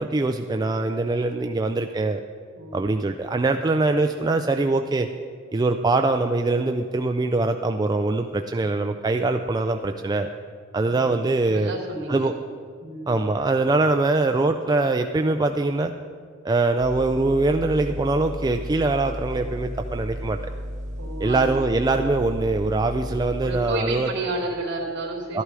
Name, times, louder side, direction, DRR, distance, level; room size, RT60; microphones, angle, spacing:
voice 1, 0.0-2.2 2.7-5.1 5.5-10.3 10.7-11.7 12.1-12.3 13.1-15.9 16.4-20.4 21.2-24.1 25.3-25.4, right 2 dB, 20° right, 6 dB, 0.3 m, -23 dB
voice 2, 2.5-2.9 10.8-11.2 11.5-12.3 12.8-13.2 21.0-21.6 23.4-25.4, right 2 dB, 60° right, 1 dB, 3.0 m, -31 dB
sound 1, 16.8-23.6, equal, 35° right, 1.5 m, -34 dB
12.5 x 11.5 x 4.8 m, 2.1 s
head